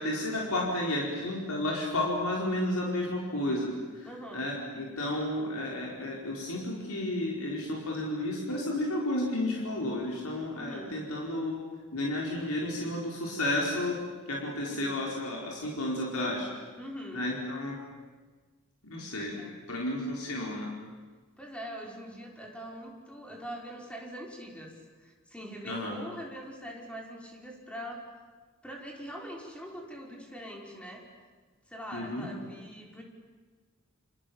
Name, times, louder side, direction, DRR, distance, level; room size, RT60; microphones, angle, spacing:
voice 1, 0.0-11.6 11.9-14.0 14.3-16.5 17.1-17.8 18.8-19.4 19.7-20.7 25.6-26.0 31.9-32.3, left 1 dB, 85° left, -2 dB, 4.8 m, -32 dB
voice 2, 4.0-4.5 10.6-11.0 14.7-15.0 16.8-17.2 19.2-19.6 21.4-28.1 28.6-31.0 31.7-33.0, equal, 5° left, -1 dB, 5.2 m, -43 dB
29.5 x 28.0 x 7.3 m, 1.4 s
head